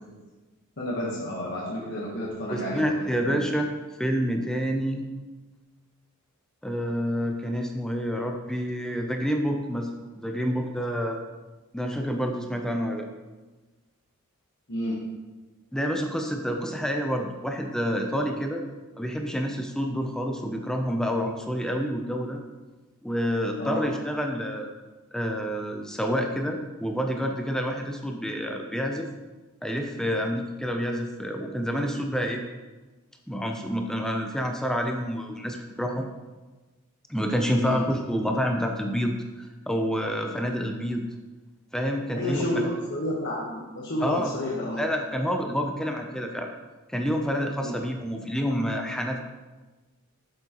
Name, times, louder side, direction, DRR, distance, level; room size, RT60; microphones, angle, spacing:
voice 1, 0.8-3.0 3.2-3.4 14.7-15.1 23.6-23.8 37.6-37.8 42.1-44.8 47.6-47.8, left 1 dB, 55° left, -4 dB, 1.1 m, -30 dB
voice 2, 2.5-3.7 4.0-5.0 6.6-9.9 10.2-11.2 11.7-13.1 15.7-18.6 19.0-22.4 23.0-24.7 25.1-29.1 29.6-32.4 33.3-36.1 37.1-41.1 41.7-42.6 44.0-44.3 44.8-46.5 46.9-49.2, equal, 5° left, 3 dB, 0.5 m, -28 dB
7.8 x 7.1 x 2.9 m, 1.2 s
head